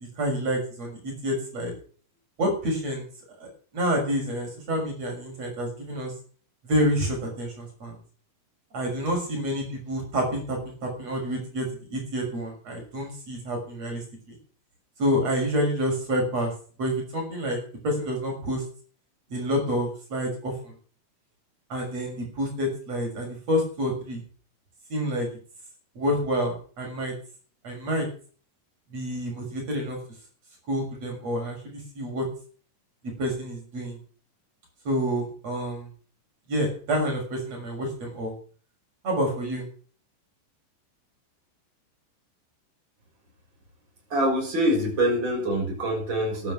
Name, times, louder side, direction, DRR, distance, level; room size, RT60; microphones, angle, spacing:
voice 1, 0.2-1.7 2.4-3.1 3.4-3.5 3.7-6.1 6.6-7.9 8.7-14.0 15.0-16.5 16.8-17.6 17.8-18.6 19.3-20.7 21.7-24.2 24.9-25.3 26.0-27.1 27.6-28.1 28.9-30.0 30.7-32.3 33.2-34.0 34.9-35.9 36.5-38.3 39.0-39.7, equal, 50° right, 1 dB, 7.4 m, -28 dB
voice 2, 44.1-46.5, right 1 dB, 35° right, 1 dB, 6.7 m, -25 dB
13.5 x 12.5 x 6.4 m, 0.43 s
omnidirectional pair, 3.8 m